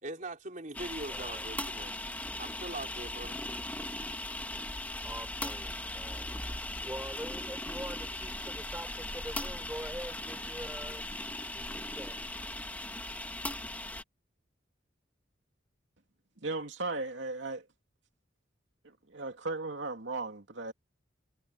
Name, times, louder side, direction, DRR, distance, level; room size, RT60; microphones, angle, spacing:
voice 1, 0.0-1.9 2.4-3.4, right 2 dB, 40° right, 4.2 m, -41 dB
sound 1, 0.7-14.0, left 1 dB, 10° left, 1.7 m, -38 dB
voice 2, 1.1-1.4 5.0-6.5 6.8-11.0 11.5-12.2, right 1 dB, 10° right, 4.9 m, -44 dB
voice 3, 16.4-17.7 18.8-20.7, right 3 dB, 75° right, 2.6 m, -36 dB
head